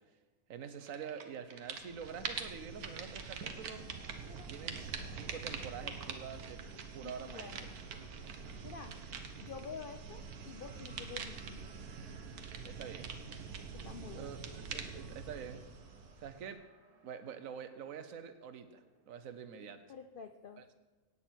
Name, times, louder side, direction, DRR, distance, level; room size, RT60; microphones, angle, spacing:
voice 1, 0.5-3.8 4.5-6.6 6.9-7.7 12.6-13.1 14.1-14.4 14.7-15.6 16.2-16.6 17.0-19.8 20.6-20.7, right 7 dB, 65° right, 10 dB, 1.3 m, -46 dB
sound 1, 0.8-19.2, right 3 dB, 30° right, 0.9 m, -64 dB
sound 2, 0.9-1.2 1.5-16.5, right 5 dB, 90° right, 1.5 m, -44 dB
voice 2, 7.0-7.7 8.6-9.0 9.4-11.7 13.7-14.4 19.9-20.7, left 6 dB, 60° left, 7 dB, 0.5 m, -49 dB
17.0 x 8.4 x 4.5 m, 1.2 s
omnidirectional pair, 1.5 m